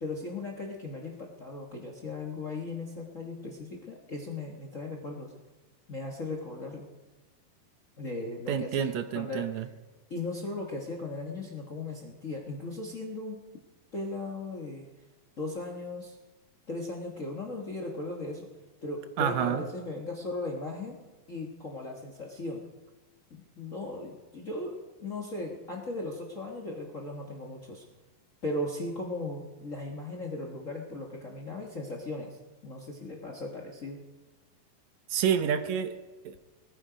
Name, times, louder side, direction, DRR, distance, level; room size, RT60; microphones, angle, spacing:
voice 1, 0.0-5.3 5.9-6.9 8.0-9.6 10.1-13.4 13.9-14.9 15.4-16.2 16.7-18.5 18.8-21.0 21.3-22.7 23.3-27.8 28.4-32.4 32.6-34.0, left 2 dB, 70° left, 2 dB, 0.7 m, -37 dB
voice 2, 8.5-9.7 19.2-19.6 35.1-36.0 36.3-36.4, right 8 dB, 70° right, 9 dB, 1.8 m, -28 dB
20.0 x 14.5 x 5.1 m, 1.2 s
omnidirectional pair, 4.1 m